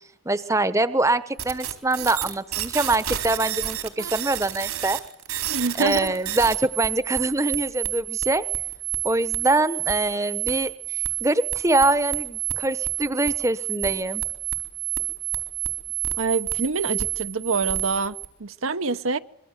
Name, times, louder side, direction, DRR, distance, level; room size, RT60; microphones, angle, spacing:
voice 1, 0.2-5.0 5.8-8.4 9.0-14.2, right 2 dB, 15° right, 13 dB, 1.0 m, -24 dB
sound 1, 1.4-18.3, right 14 dB, 85° right, 4.2 m, -29 dB
voice 2, 5.5-6.2 16.2-19.2, right 4 dB, 70° right, 10 dB, 1.0 m, -26 dB
25.5 x 23.5 x 8.1 m, 0.75 s
head